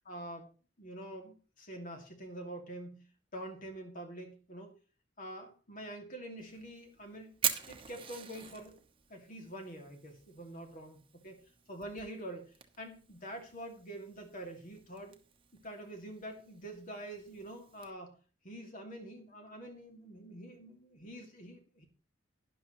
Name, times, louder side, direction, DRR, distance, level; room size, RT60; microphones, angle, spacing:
voice 1, 0.1-0.5 0.8-4.7 5.2-7.3 7.7-8.8 9.1-11.4 11.7-12.4 12.8-15.2 15.5-18.2 18.4-21.9, right 1 dB, 45° left, 4 dB, 2.3 m, -46 dB
Fire, 6.4-17.9, right 8 dB, 30° right, 1.0 m, -44 dB
11.5 x 11.0 x 3.1 m, 0.36 s
head